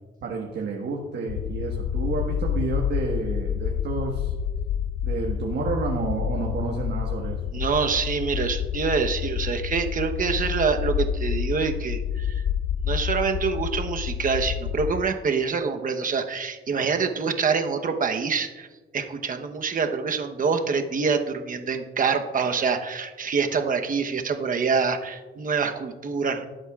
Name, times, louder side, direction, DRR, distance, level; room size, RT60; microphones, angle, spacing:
voice 1, 0.2-4.3 5.0-7.4, right 3 dB, 60° right, -1 dB, 1.5 m, -30 dB
sound 1, 1.3-15.0, left 8 dB, 80° left, 0.6 m, -28 dB
voice 2, 7.5-12.4 12.9-18.7 18.9-26.5, right 5 dB, 45° right, 6 dB, 1.0 m, -26 dB
17.5 x 8.0 x 2.4 m, 1.3 s
cardioid pair, 90°, 20 cm